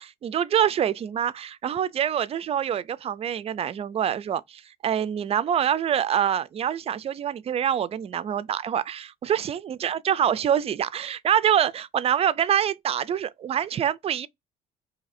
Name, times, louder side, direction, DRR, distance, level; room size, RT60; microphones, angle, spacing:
voice 1, 0.0-14.3, right 9 dB, 35° right, 0.4 m, -25 dB
2.8 x 2.5 x 4.0 m
cardioid pair, 110°, 17 cm